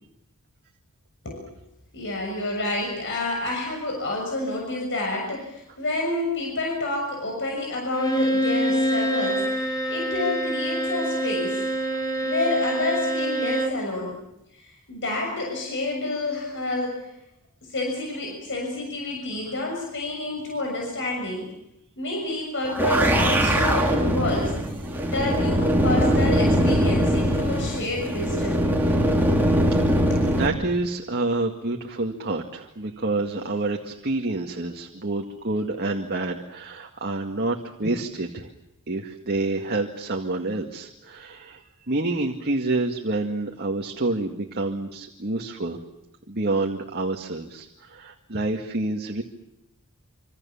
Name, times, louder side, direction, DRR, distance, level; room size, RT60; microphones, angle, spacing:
voice 1, 1.2-1.5 1.9-11.6 12.2-14.2 14.5-17.1 17.6-21.4 22.0-24.6 25.1-28.7 30.1-30.2, left 2 dB, 55° left, 0 dB, 6.8 m, -29 dB
Bowed string instrument, 7.9-13.9, right 1 dB, 20° left, 3.5 m, -26 dB
sound 1, 22.6-30.5, equal, 10° right, 3.9 m, -21 dB
voice 2, 28.9-29.3 30.3-38.5 38.9-45.8 46.3-49.2, right 2 dB, 45° right, 2 dB, 2.1 m, -28 dB
27.5 x 26.5 x 7.3 m, 0.85 s
head